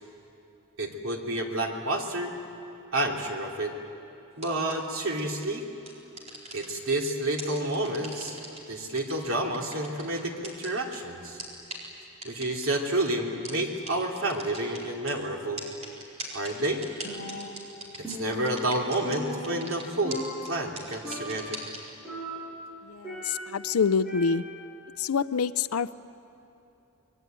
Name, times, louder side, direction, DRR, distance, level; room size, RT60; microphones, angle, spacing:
voice 1, 0.8-2.3 2.9-3.7 4.4-5.6 6.5-8.4 8.7-11.4 12.2-15.6 16.3-16.8 18.0-20.2 20.5-21.6, right 1 dB, 70° right, 0 dB, 3.0 m, -29 dB
sound 1, 4.4-4.7 5.2-5.4 5.8-7.0 7.4-8.6 9.0-11.0 11.4-11.5 11.7-11.8 12.2-12.7 13.0-13.1 13.4-13.5 13.9-14.0 14.2-15.1 15.6-19.2 19.4-19.8 20.1-20.2 20.4-20.5 20.8-21.8, right 2 dB, 30° right, 4.4 m, -39 dB
Percussion, 17.0-17.7 18.0-19.8 20.0-20.7 21.0-21.6 22.0-23.6 24.0-24.7, equal, 5° right, 7.0 m, -38 dB
voice 2, 22.8-24.4 25.0-25.9, left 5 dB, 85° left, 15 dB, 0.5 m, -26 dB
25.5 x 22.0 x 9.2 m, 2.9 s
head